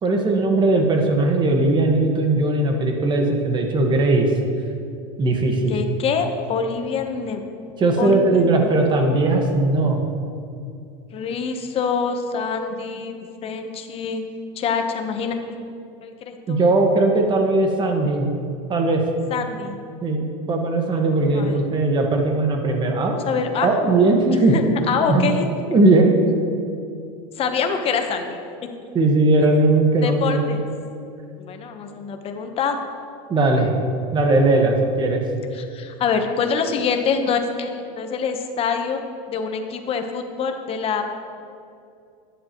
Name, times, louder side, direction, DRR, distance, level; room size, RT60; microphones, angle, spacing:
voice 1, 0.0-4.3 5.2-5.8 7.8-10.0 16.5-18.3 18.7-19.0 20.0-23.2 23.6-24.5 25.1-25.3 25.7-26.1 28.9-30.4 33.3-33.7 34.1-35.2, right 2 dB, 25° right, 2 dB, 1.5 m, -18 dB
voice 2, 5.7-7.4 8.0-8.7 11.1-13.1 13.4-14.2 14.6-15.4 16.0-16.6 19.3-19.8 21.0-21.6 23.1-23.7 24.5-25.5 27.4-28.4 28.8-28.9 30.0-30.6 31.4-32.8 35.5-39.0 39.3-41.2, left 6 dB, 35° left, 6 dB, 1.0 m, -25 dB
12.5 x 10.0 x 3.1 m, 2.5 s
supercardioid pair, 130°, 17 cm